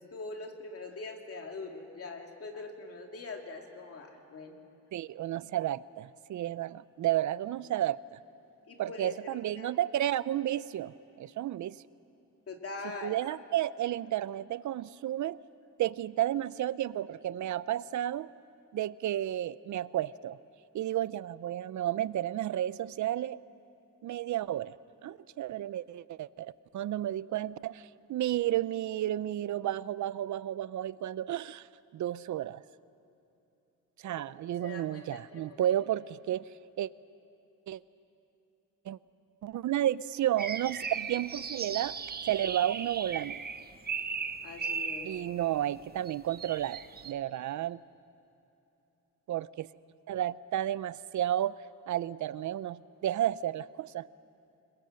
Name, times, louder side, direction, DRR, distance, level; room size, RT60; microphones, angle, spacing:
voice 1, 0.0-4.6 8.7-9.7 12.5-13.1 34.1-34.2 34.6-35.7 44.4-45.1, left 3 dB, 45° left, 3 dB, 2.6 m, -43 dB
voice 2, 4.9-8.2 8.8-11.8 13.0-15.4 15.8-18.3 18.7-20.4 20.7-23.4 24.0-24.7 25.0-27.8 28.1-31.7 31.9-32.6 34.0-36.4 36.8-36.9 37.7-37.8 38.9-39.0 39.4-42.0 42.3-43.4 45.0-47.8 49.3-49.7 50.1-51.6 51.9-54.1, right 12 dB, 65° right, 18 dB, 0.5 m, -32 dB
sound 1, 40.4-45.3 46.1-47.1, right 5 dB, 30° right, 0.8 m, -37 dB
26.0 x 22.0 x 7.7 m, 2.9 s
wide cardioid pair, 150°, 32 cm